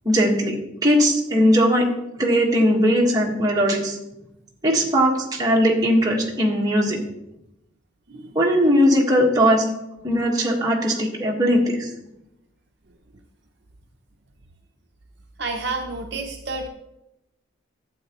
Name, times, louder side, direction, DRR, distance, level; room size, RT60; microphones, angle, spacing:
voice 1, 0.0-0.6 0.8-4.0 4.6-7.0 8.3-9.7 10.0-11.9, equal, 20° right, -2 dB, 1.5 m, -19 dB
voice 2, 15.4-16.7, right 3 dB, 55° right, 3 dB, 0.7 m, -29 dB
12.0 x 8.1 x 3.0 m, 0.86 s
head